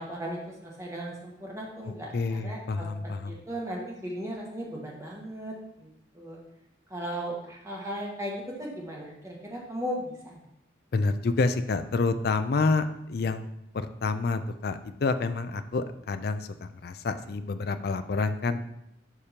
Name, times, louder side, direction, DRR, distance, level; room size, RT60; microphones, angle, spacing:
voice 1, 0.0-2.1 2.4-2.8 3.3-5.9 6.1-6.4 6.9-8.3 8.6-10.4, equal, 15° right, -3 dB, 1.5 m, -36 dB
voice 2, 1.8-3.4 10.9-13.5 13.7-18.6, left 3 dB, 55° left, 10 dB, 0.4 m, -28 dB
11.0 x 5.1 x 2.9 m, 0.80 s
head